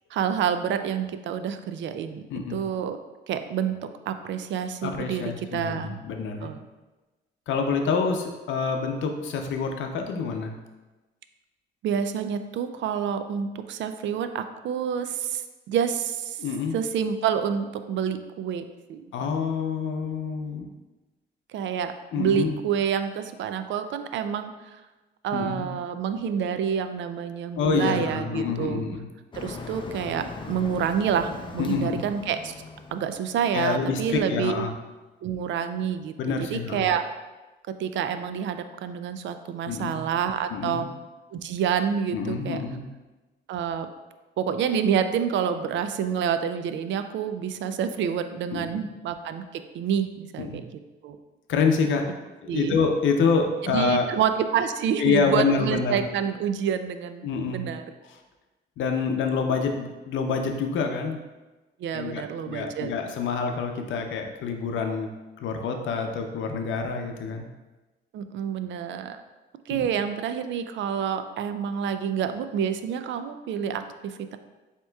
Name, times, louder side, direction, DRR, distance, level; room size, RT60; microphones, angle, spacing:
voice 1, 0.1-2.2 2.5-3.0 3.3-6.0 6.4-6.6 11.8-15.4 15.7-16.4 16.7-19.1 21.5-24.8 25.2-28.8 29.3-32.5 32.9-34.7 35.2-37.0 37.8-40.9 41.3-42.6 43.5-43.9 44.4-50.7 51.0-51.2 52.5-52.8 53.6-57.3 57.5-57.8 61.8-62.9 68.1-69.2 69.7-74.4, right 8 dB, 70° right, 9 dB, 0.4 m, -28 dB
voice 2, 2.3-2.6 4.8-6.5 7.5-10.6 16.4-16.7 19.1-20.7 22.1-22.6 25.3-25.7 27.6-29.1 31.6-32.0 33.5-34.7 36.2-36.9 39.7-40.1 40.5-40.9 42.1-42.8 48.5-48.7 50.4-50.6 51.5-52.1 52.4-54.1 55.0-56.1 57.2-57.7 58.1-58.2 58.8-61.2 61.9-65.1 65.4-67.5 69.7-69.9, left 5 dB, 75° left, 4 dB, 0.6 m, -27 dB
Motor vehicle (road), 29.3-34.3, left 3 dB, 25° left, 0.5 m, -40 dB
7.5 x 2.9 x 2.3 m, 1.2 s
cardioid pair, 90°, 20 cm